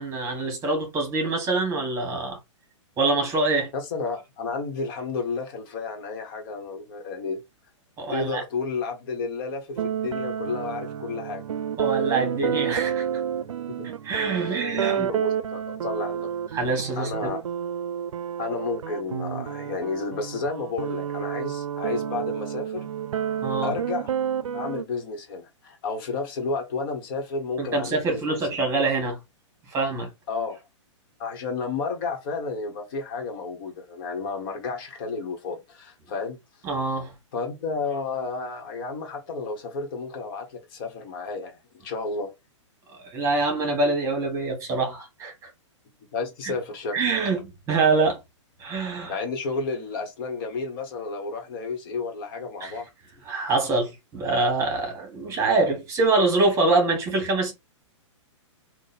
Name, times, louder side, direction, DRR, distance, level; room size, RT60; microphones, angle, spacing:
voice 1, 0.0-2.4 3.0-3.7 8.0-8.4 11.8-13.2 14.0-15.1 16.5-17.3 23.4-23.7 27.6-29.2 29.7-30.1 36.6-37.1 43.0-45.5 46.4-46.5 46.9-48.2 48.6-49.2 52.6-52.7 53.2-57.5, right 3 dB, 20° right, 1.7 m, -25 dB
voice 2, 3.7-7.4 8.1-11.4 13.7-13.9 14.3-16.3 17.0-17.4 18.4-22.9 23.6-24.1 24.5-28.4 30.3-30.6 31.2-36.4 37.3-42.3 46.1-47.0 49.0-52.9, left 4 dB, 45° left, 1.5 m, -32 dB
sound 1, 9.8-24.8, right 9 dB, 90° right, 0.5 m, -30 dB
3.8 x 2.5 x 4.2 m
hypercardioid pair, 145°, 16 cm